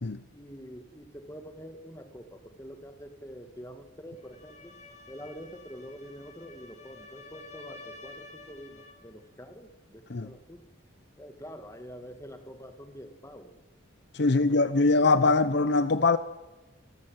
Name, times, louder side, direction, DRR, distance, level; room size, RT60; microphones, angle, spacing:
voice 1, 0.3-4.8 5.1-10.6 11.2-13.5 14.2-15.3, equal, 15° left, 1.9 m, -46 dB
sound 1, 4.2-9.1, left 3 dB, 35° left, 2.5 m, -50 dB
voice 2, 14.1-16.2, left 3 dB, 55° left, 0.7 m, -22 dB
27.5 x 14.0 x 9.0 m
head